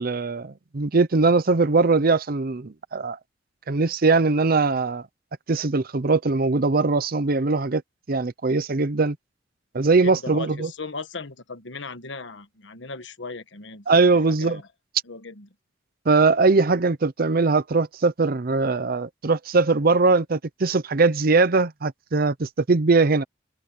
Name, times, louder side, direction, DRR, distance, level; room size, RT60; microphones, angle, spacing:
voice 1, 0.0-3.2 3.7-5.0 5.5-7.8 8.1-9.2 9.7-10.7 13.9-14.6 16.1-23.2, right 3 dB, 55° right, 0.7 m, -21 dB
voice 2, 10.0-14.7 15.0-15.5, left 3 dB, 80° left, 1.4 m, -37 dB
head